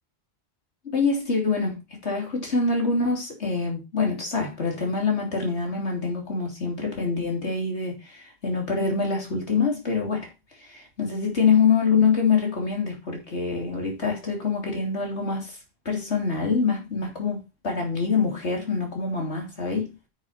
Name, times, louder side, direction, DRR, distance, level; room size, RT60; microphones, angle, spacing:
voice 1, 0.8-10.3 10.6-15.6 15.8-19.9, left 5 dB, 90° left, 3.4 m, -25 dB
9.3 x 7.2 x 4.3 m
omnidirectional pair, 1.1 m